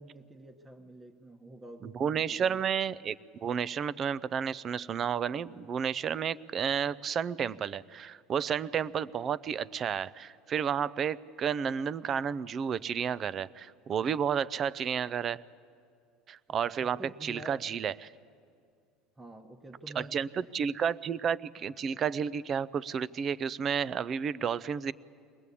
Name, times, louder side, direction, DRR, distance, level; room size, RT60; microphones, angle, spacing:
voice 1, 0.0-2.6 16.7-17.7 19.2-20.5, right 1 dB, 15° right, 4 dB, 1.1 m, -48 dB
voice 2, 1.8-15.4 16.3-18.1 20.0-24.9, right 7 dB, 40° right, 20 dB, 0.5 m, -31 dB
21.5 x 20.0 x 8.4 m, 2.3 s
supercardioid pair, 105°, 0 cm